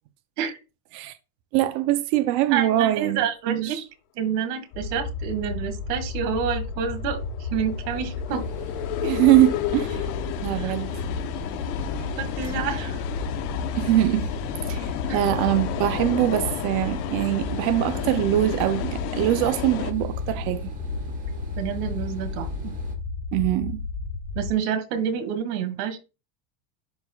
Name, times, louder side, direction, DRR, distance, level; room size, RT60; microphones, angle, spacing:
voice 1, 1.5-3.8 9.0-10.1 10.4-11.0 13.7-14.3 14.7-20.7 23.3-23.8, right 14 dB, 45° right, 0.4 m, -23 dB
voice 2, 2.5-3.8 4.2-8.5 10.5-10.7 12.0-13.0 15.1-15.3 21.6-22.7 24.4-26.0, right 8 dB, 75° right, 1.9 m, -28 dB
sound 1, 4.7-24.5, left 3 dB, 90° left, 1.8 m, -32 dB
sound 2, 5.8-19.9, left 14 dB, 65° left, 0.8 m, -33 dB
sound 3, 8.3-23.0, right 2 dB, 15° right, 1.0 m, -43 dB
11.5 x 4.2 x 2.2 m
cardioid pair, 170°, 47 cm